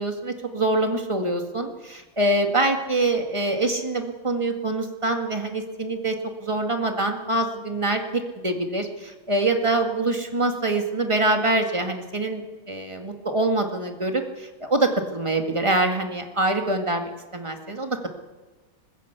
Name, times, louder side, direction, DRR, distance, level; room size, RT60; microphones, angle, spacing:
voice 1, 0.0-18.1, right 2 dB, 15° right, 4 dB, 1.7 m, -25 dB
20.5 x 15.5 x 8.2 m, 1.2 s
omnidirectional pair, 2.3 m